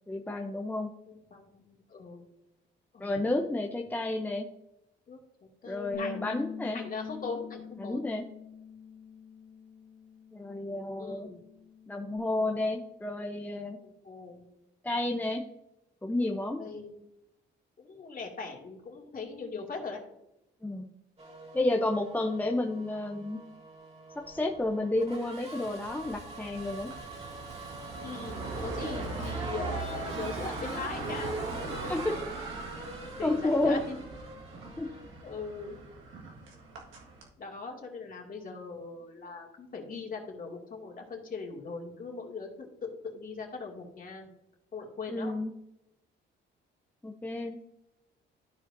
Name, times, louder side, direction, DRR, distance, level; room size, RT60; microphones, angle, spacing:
voice 1, 0.1-0.9 3.0-4.5 5.7-6.8 7.8-8.2 10.3-11.3 11.9-13.8 14.8-15.4 16.0-16.6 20.6-20.9 21.5-23.4 24.2-26.9 31.8-32.2 33.2-33.8 34.8-34.9 45.1-45.5 47.0-47.6, left 2 dB, 10° left, 3 dB, 0.7 m, -31 dB
voice 2, 1.1-2.2 2.9-3.3 5.1-5.2 5.6-6.3 6.7-8.1 11.0-11.4 13.8-14.5 16.6-16.9 17.8-20.0 28.0-31.3 31.8-32.0 33.1-34.0 34.9-35.0 35.2-35.8 37.4-44.3 44.7-45.3, left 4 dB, 45° left, 0 dB, 2.4 m, -40 dB
Bass guitar, 5.9-12.2, left 7 dB, 85° left, 1.1 m, -45 dB
Race car auto racing / Accelerating revving vroom, 21.2-36.0, right 2 dB, 30° right, 2.3 m, -44 dB
sound 1, 25.8-37.3, right 3 dB, 80° right, 1.8 m, -40 dB
13.5 x 4.9 x 2.7 m, 0.87 s
cardioid pair, 90°, 20 cm